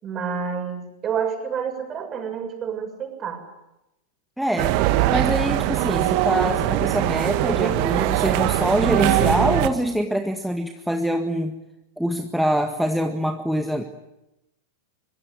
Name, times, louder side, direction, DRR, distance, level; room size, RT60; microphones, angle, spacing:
voice 1, 0.0-3.4, right 7 dB, 25° right, 5 dB, 7.0 m, -29 dB
voice 2, 4.4-11.6 12.0-13.8, equal, ahead, 5 dB, 1.8 m, -24 dB
sound 1, 4.6-9.7, right 14 dB, 45° right, 1.9 m, -21 dB
25.0 x 23.5 x 9.8 m, 0.92 s
figure-of-eight pair, 90°, 0 cm